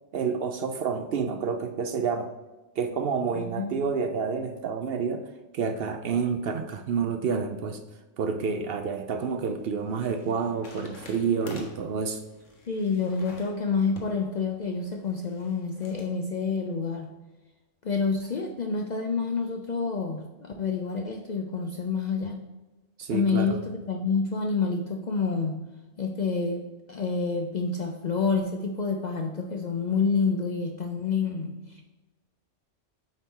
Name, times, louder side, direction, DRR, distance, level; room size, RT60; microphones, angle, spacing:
voice 1, 0.1-2.3 2.8-5.2 5.5-7.8 8.2-12.2 23.0-23.6, right 5 dB, 60° right, 6 dB, 0.7 m, -29 dB
voice 2, 3.4-3.9 12.7-17.1 17.8-22.4 23.1-25.6 26.0-26.6 26.9-31.9, left 5 dB, 55° left, 3 dB, 0.5 m, -28 dB
sound 1, 9.0-16.1, left 3 dB, 90° left, 1.4 m, -50 dB
8.9 x 4.1 x 3.7 m, 1.1 s
omnidirectional pair, 1.2 m